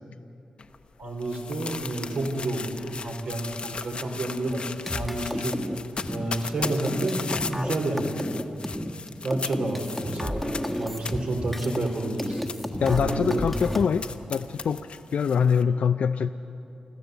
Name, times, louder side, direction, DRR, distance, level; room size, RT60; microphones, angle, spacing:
sound 1, 0.6-15.6, left 4 dB, 50° left, 0.8 m, -38 dB
voice 1, 1.0-2.7 3.0-4.6 4.9-5.6 6.1-7.2 7.5-8.1 9.2-10.5 10.8-12.4 12.9-13.4, right 2 dB, 70° right, 2 dB, 3.6 m, -29 dB
sound 2, 4.5-11.9 12.2-13.8, left 1 dB, 5° left, 1.3 m, -32 dB
voice 2, 12.8-16.3, left 6 dB, 80° left, 9 dB, 0.4 m, -24 dB
25.5 x 14.0 x 7.9 m, 2.9 s
wide cardioid pair, 115°, 2 cm